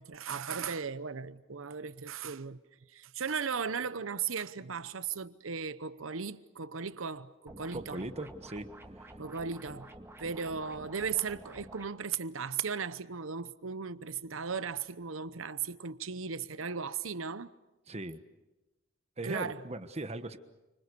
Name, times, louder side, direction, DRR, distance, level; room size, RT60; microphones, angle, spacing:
voice 1, 0.0-2.6 2.9-8.0 9.2-9.9 10.2-17.5 19.2-19.6, right 6 dB, 85° right, 0.9 m, -36 dB
sound 1, 7.5-11.9, right 1 dB, 15° right, 2.1 m, -50 dB
voice 2, 7.7-8.7 9.0-9.1 17.9-18.2 19.2-20.4, right 2 dB, 35° right, 1.3 m, -39 dB
29.5 x 26.0 x 6.8 m
head